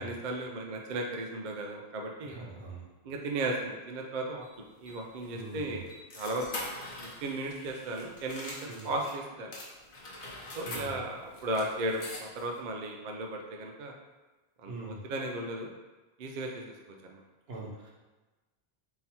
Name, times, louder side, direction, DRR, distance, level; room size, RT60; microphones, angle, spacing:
voice 1, 0.0-2.4 3.0-4.5 4.8-5.9 6.1-6.5 7.2-8.6 8.8-9.5 10.6-13.9 14.6-15.7 16.2-16.7 17.0-17.2, right 2 dB, 55° right, 1 dB, 0.6 m, -35 dB
voice 2, 2.2-2.8 5.3-5.8 8.7-8.9 10.6-11.0 14.7-15.0 17.5-17.9, right 2 dB, 75° right, -3 dB, 1.1 m, -42 dB
sound 1, 4.4-9.2 9.5-12.6, left 2 dB, 60° left, 1.0 m, -44 dB
3.8 x 2.7 x 4.2 m, 1.2 s
omnidirectional pair, 1.1 m